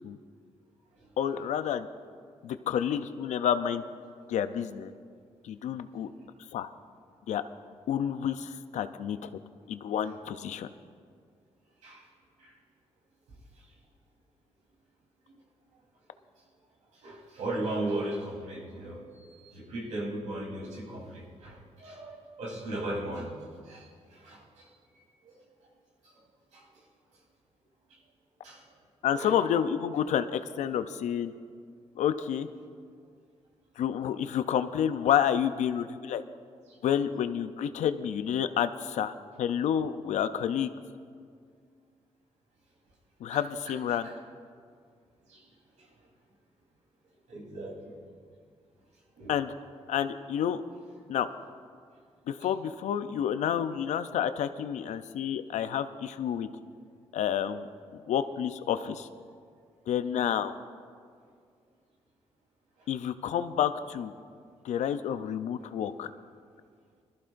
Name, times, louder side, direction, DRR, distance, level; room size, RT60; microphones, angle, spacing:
voice 1, 1.2-1.9 2.4-3.8 4.3-4.9 5.4-6.1 6.5-6.7 7.3-7.4 7.9-9.3 9.7-10.7 29.0-31.3 32.0-32.5 33.8-36.2 36.8-40.7 43.2-44.1 49.3-49.5 49.9-50.6 51.1-51.3 52.3-56.5 57.1-57.7 58.1-59.1 59.9-60.5 62.9-64.1 64.6-66.1, left 9 dB, 85° left, 11 dB, 0.5 m, -29 dB
voice 2, 17.0-23.4 23.6-24.7 24.9-25.4 26.0-26.2 26.5-26.6 28.4-28.6 29.1-29.4 36.7-36.8 43.3-44.1 45.3-45.5 45.8-45.9 47.3-48.0 49.2-49.4 62.8-62.9, right 1 dB, 85° right, -3 dB, 3.6 m, -38 dB
21.5 x 14.0 x 2.6 m, 2.1 s
cardioid pair, 70°, 12 cm